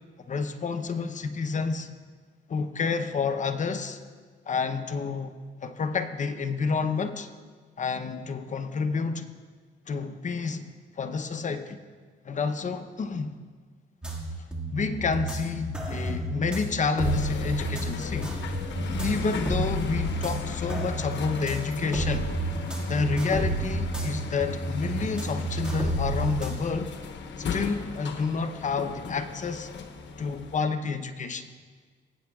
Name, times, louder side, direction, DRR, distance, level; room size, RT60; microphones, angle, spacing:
voice 1, 0.3-1.9 2.5-4.0 4.5-7.3 7.8-9.3 9.9-11.8 12.2-13.4 14.7-18.6 19.0-22.3 22.9-26.9 27.4-29.7 30.2-31.5, left 4 dB, 40° left, 9 dB, 0.7 m, -29 dB
sound 1, 14.0-26.5, right 1 dB, 5° right, 1.9 m, -31 dB
sound 2, 17.0-30.6, left 5 dB, 65° left, 1.0 m, -37 dB
18.5 x 8.7 x 2.3 m, 1.5 s
cardioid pair, 90°, 20 cm